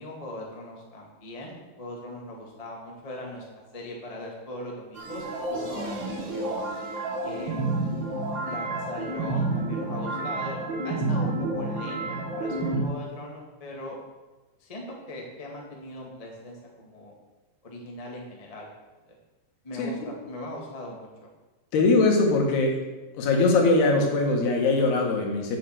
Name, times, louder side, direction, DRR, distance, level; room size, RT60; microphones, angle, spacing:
voice 1, 0.0-6.6 7.2-7.8 8.4-14.0 14.6-17.2 17.6-18.7 19.6-21.3, left 1 dB, 20° left, -1 dB, 0.8 m, -40 dB
sound 1, 5.0-12.8, right 2 dB, 85° right, 1.0 m, -30 dB
voice 2, 21.7-22.8 23.2-25.6, left 3 dB, 80° left, 1 dB, 3.6 m, -21 dB
7.7 x 7.6 x 7.9 m, 1.1 s
omnidirectional pair, 4.6 m